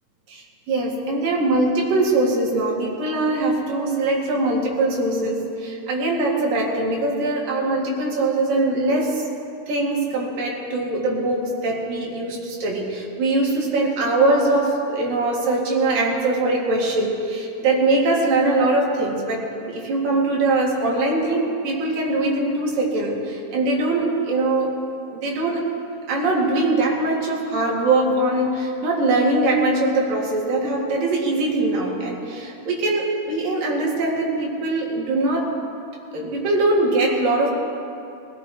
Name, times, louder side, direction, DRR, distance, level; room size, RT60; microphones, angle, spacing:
voice 1, 0.3-9.2 9.7-24.8 25.1-25.6 26.1-35.5 36.1-37.6, right 2 dB, 85° right, -3 dB, 4.0 m, -22 dB
24.5 x 17.5 x 3.1 m, 2.6 s
omnidirectional pair, 3.9 m